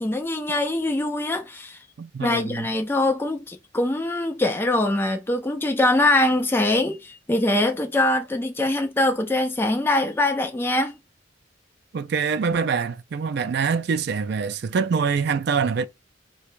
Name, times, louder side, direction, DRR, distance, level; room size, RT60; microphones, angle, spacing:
voice 1, 0.0-1.8 2.2-11.0, left 2 dB, 10° left, 0.4 m, -23 dB
voice 2, 2.0-2.7 11.9-15.9, right 5 dB, 60° right, 0.4 m, -25 dB
4.5 x 2.3 x 2.5 m
head